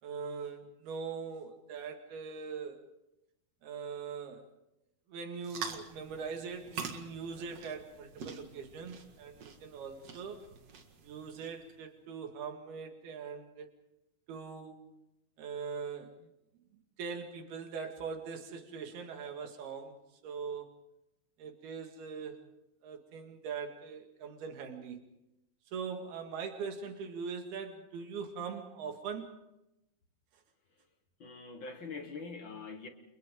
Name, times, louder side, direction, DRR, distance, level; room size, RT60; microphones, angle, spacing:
voice 1, 0.0-2.8 3.6-4.4 5.1-10.4 11.0-13.7 14.3-14.8 15.4-16.3 17.0-20.0 20.2-20.7 21.4-22.4 22.8-25.0 25.7-29.3, right 5 dB, 85° right, 3 dB, 4.1 m, -41 dB
sound 1, 5.4-11.7, right 5 dB, 50° right, 2.6 m, -46 dB
voice 2, 31.2-32.9, left 4 dB, 60° left, 6 dB, 1.3 m, -43 dB
29.5 x 29.5 x 3.8 m, 0.88 s
omnidirectional pair, 4.3 m